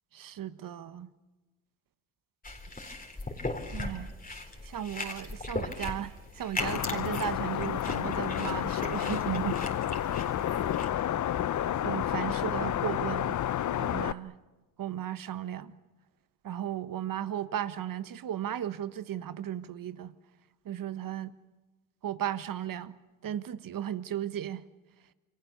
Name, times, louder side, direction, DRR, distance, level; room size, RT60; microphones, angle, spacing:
voice 1, 0.1-1.1 3.7-4.1 4.6-9.6 11.8-13.4 13.8-14.4 14.8-15.8 16.4-20.1 20.6-21.4 22.0-23.0 23.2-24.6, right 10 dB, 50° right, 1.4 m, -35 dB
sound 1, 2.4-10.9, left 2 dB, 20° left, 3.8 m, -38 dB
sound 2, 6.6-14.1, left 11 dB, 45° left, 0.8 m, -30 dB
28.5 x 23.5 x 7.0 m
hypercardioid pair, 60°, 42 cm